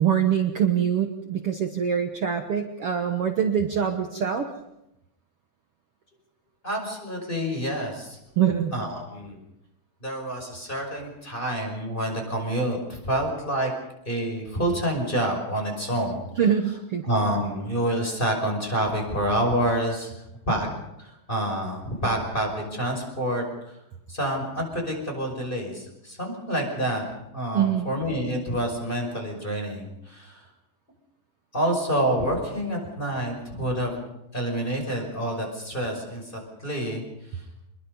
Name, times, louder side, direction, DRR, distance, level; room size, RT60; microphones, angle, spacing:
voice 1, 0.0-4.5 8.4-8.7 16.4-17.1 27.5-27.9, right 8 dB, 65° right, 5 dB, 1.5 m, -24 dB
voice 2, 6.6-8.2 8.7-9.4 10.0-13.7 14.1-16.2 17.0-20.1 20.5-20.7 21.0-23.8 24.1-27.1 27.3-30.4 31.5-34.1 34.3-37.0 37.3-37.4, right 1 dB, 15° left, 2 dB, 5.7 m, -28 dB
26.0 x 21.5 x 5.4 m, 0.86 s
omnidirectional pair, 4.2 m